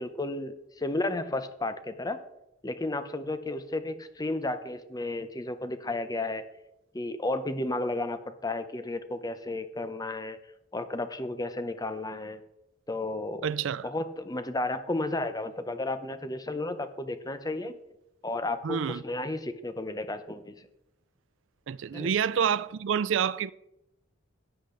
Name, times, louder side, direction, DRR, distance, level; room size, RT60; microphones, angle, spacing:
voice 1, 0.0-2.2 2.6-6.4 6.9-10.4 10.7-12.4 12.9-13.5 13.8-17.7 18.2-20.7 21.9-22.1, left 2 dB, 20° left, 0.8 m, -33 dB
voice 2, 13.4-13.9 18.6-19.0 21.7-23.5, right 7 dB, 70° right, 0.4 m, -28 dB
14.0 x 10.0 x 3.9 m
head